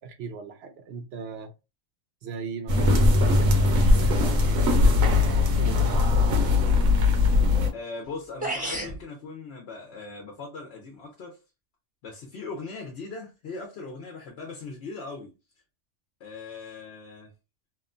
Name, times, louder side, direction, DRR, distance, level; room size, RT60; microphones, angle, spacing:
voice 1, 0.0-1.5 2.2-6.6, right 5 dB, 60° right, 0.7 m, -38 dB
sound 1, 2.7-7.7, left 3 dB, 90° right, 1.1 m, -20 dB
voice 2, 7.7-11.4 12.0-15.3 16.2-17.3, left 3 dB, 60° left, 0.9 m, -39 dB
sound 2, 8.0-8.1 8.4-9.0, right 1 dB, 10° right, 0.7 m, -30 dB
2.9 x 2.2 x 2.4 m
omnidirectional pair, 1.4 m